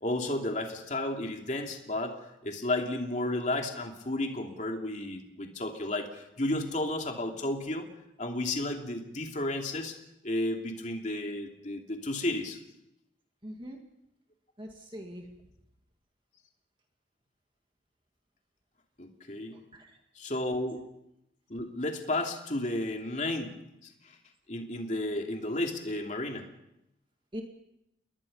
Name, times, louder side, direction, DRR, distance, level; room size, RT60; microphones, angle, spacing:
voice 1, 0.0-7.9 8.2-10.0 10.2-12.6 19.0-19.6 20.2-20.8 21.5-23.6 23.8-24.2 24.5-26.5, left 1 dB, 40° left, 3 dB, 2.8 m, -33 dB
voice 2, 13.4-13.8 14.6-15.3 19.5-20.0 27.3-27.4, equal, 25° right, 2 dB, 2.1 m, -42 dB
29.5 x 21.0 x 5.5 m, 0.84 s
head